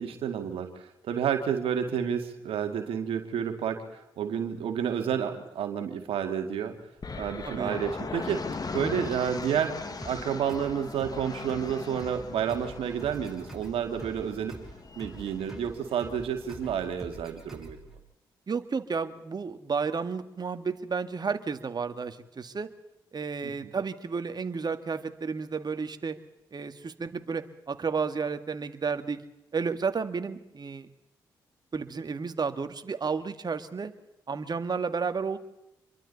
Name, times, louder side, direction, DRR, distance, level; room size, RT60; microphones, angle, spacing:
voice 1, 0.0-6.8 7.2-8.4 8.7-14.6 15.0-17.8 23.4-23.5, right 8 dB, 75° right, 6 dB, 2.1 m, -30 dB
sound 1, 7.0-16.9, left 4 dB, 40° left, 1.9 m, -40 dB
voice 2, 7.4-7.8 18.5-22.7 23.1-26.2 26.5-29.2 29.5-30.9 31.7-33.9 34.3-35.4, right 5 dB, 45° right, 9 dB, 1.9 m, -32 dB
sound 2, 10.0-18.0, right 2 dB, 5° right, 7.1 m, -46 dB
27.5 x 23.0 x 4.1 m, 0.90 s
hypercardioid pair, 45°, 10 cm